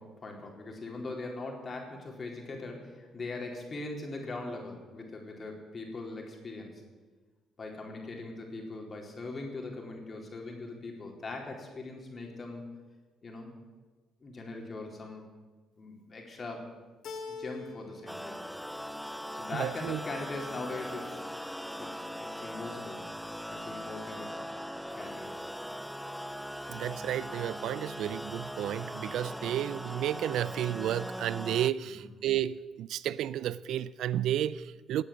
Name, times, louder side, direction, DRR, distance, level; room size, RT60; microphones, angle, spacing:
voice 1, 0.0-6.7 7.6-12.7 13.2-13.5 14.2-15.3 15.8-16.7 17.3-18.4 19.3-21.3 21.8-23.1 23.5-24.4 25.0-25.4 31.9-32.1, left 2 dB, 40° left, 4.1 m, -41 dB
Keyboard (musical), 17.0-18.2 18.5-19.2, left 5 dB, 60° left, 2.1 m, -43 dB
sound 1, 18.1-31.7, equal, ahead, 0.6 m, -40 dB
voice 2, 19.5-20.0 26.7-35.0, right 11 dB, 70° right, 0.5 m, -32 dB
18.0 x 8.6 x 7.7 m
supercardioid pair, 65°, 0 cm